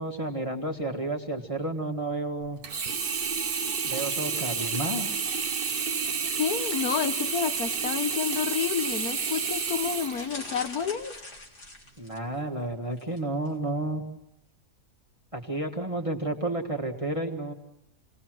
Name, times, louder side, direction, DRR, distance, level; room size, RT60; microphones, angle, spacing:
voice 1, 0.0-2.6 3.8-5.1 12.0-14.0 15.3-17.5, right 2 dB, 20° right, 2 dB, 1.8 m, -31 dB
Sink (filling or washing), 2.6-10.9 11.4-11.5, right 5 dB, 40° right, 1.0 m, -30 dB
voice 2, 6.4-11.2, left 8 dB, 70° left, 10 dB, 1.6 m, -29 dB
sound 1, 10.1-12.4 12.9-13.2 13.5-13.6, left 2 dB, 90° left, 4.5 m, -43 dB
29.0 x 19.5 x 7.7 m, 0.87 s
omnidirectional pair, 1.7 m